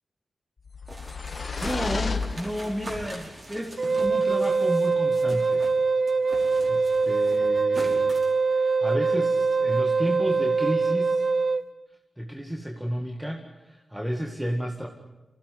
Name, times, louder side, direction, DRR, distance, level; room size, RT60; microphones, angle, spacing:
sound 1, 0.7-3.1, left 5 dB, 50° left, 1.6 m, -32 dB
sound 2, 0.9-5.8 6.1-8.4, right 1 dB, 35° right, 5.2 m, -42 dB
voice 1, 1.6-5.7 6.7-8.2 8.5-11.2 12.2-14.9, equal, 5° right, 2 dB, 2.1 m, -32 dB
Wind instrument woodwind instrument, 3.8-11.6, right 4 dB, 55° right, 1.0 m, -23 dB
26.5 x 16.5 x 9.7 m, 1.1 s
wide cardioid pair, 105°, 0 cm